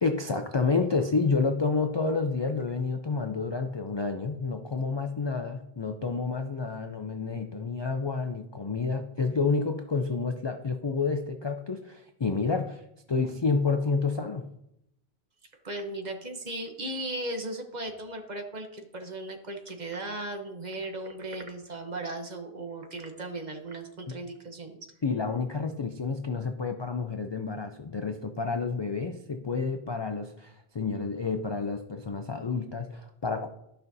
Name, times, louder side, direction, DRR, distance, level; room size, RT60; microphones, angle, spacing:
voice 1, 0.0-12.8 13.1-14.5 25.0-33.5, left 4 dB, 45° left, 6 dB, 0.3 m, -29 dB
voice 2, 15.6-24.8, right 2 dB, 45° right, 4 dB, 1.0 m, -37 dB
13.5 x 5.4 x 2.7 m, 0.80 s
omnidirectional pair, 1.1 m